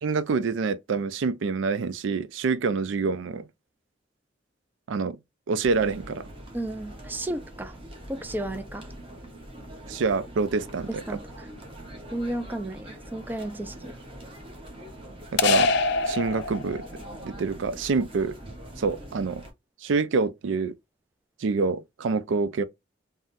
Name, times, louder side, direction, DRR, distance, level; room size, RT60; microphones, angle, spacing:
voice 1, 0.0-3.4 4.9-5.2 5.5-6.2 9.9-11.0 15.3-15.7 16.0-16.8 17.2-18.4 18.8-19.4 19.8-20.7 21.4-22.6, right 4 dB, 80° right, 0.4 m, -26 dB
sound 1, 5.6-19.5, right 1 dB, 30° right, 1.0 m, -43 dB
voice 2, 6.5-7.8 8.1-8.9 10.9-11.5 12.1-14.0, right 1 dB, 10° right, 0.3 m, -33 dB
sound 2, 15.4-17.1, left 3 dB, 60° left, 0.4 m, -24 dB
3.6 x 2.1 x 2.6 m
head